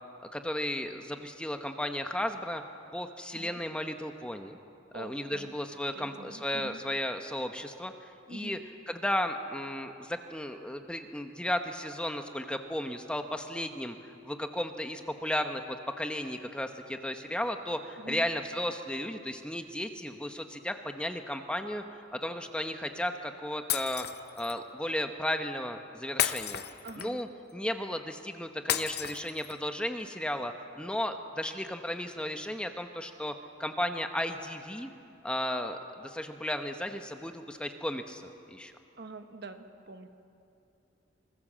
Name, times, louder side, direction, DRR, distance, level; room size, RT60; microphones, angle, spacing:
voice 1, 0.3-2.6 2.9-4.6 4.9-8.6 8.9-15.6 16.0-24.1 24.4-26.6 27.0-33.3 33.6-34.9 35.2-38.7, left 1 dB, 5° left, 6 dB, 0.9 m, -34 dB
voice 2, 4.9-5.5 5.9-6.8 8.3-8.6 18.0-18.3 26.8-27.2 39.0-40.1, right 2 dB, 55° right, 7 dB, 1.3 m, -45 dB
Shatter, 23.7-24.6 26.2-27.3 28.7-29.7, left 10 dB, 55° left, 0.8 m, -32 dB
25.0 x 19.5 x 7.5 m, 2.6 s
head